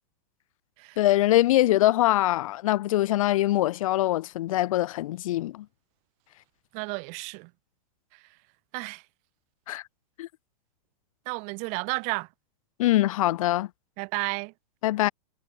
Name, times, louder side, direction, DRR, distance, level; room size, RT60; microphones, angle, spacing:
voice 1, 1.0-5.6 9.7-9.8 10.2-10.3 12.8-13.7 14.8-15.1, left 15 dB, 55° left, 1.1 m, -23 dB
voice 2, 6.7-7.5 8.7-9.0 11.2-12.3 14.0-14.5, right 33 dB, 35° right, 6.7 m, -32 dB
supercardioid pair, 165°, 21 cm